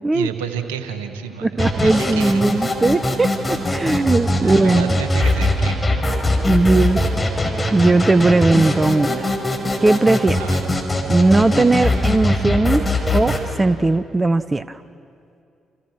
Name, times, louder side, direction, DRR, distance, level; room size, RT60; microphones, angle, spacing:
voice 1, 0.1-2.7 3.9-4.0 4.4-6.1 10.4-10.6, right 8 dB, 80° right, 8 dB, 1.6 m, -30 dB
voice 2, 1.4-5.0 6.5-7.0 7.7-9.3 9.8-10.4 11.1-12.8 13.1-14.8, right 2 dB, 25° right, 14 dB, 0.8 m, -18 dB
sound 1, 1.6-13.4, left 1 dB, 20° left, 5.0 m, -21 dB
29.5 x 29.0 x 6.2 m, 2.5 s
figure-of-eight pair, 40°, 0 cm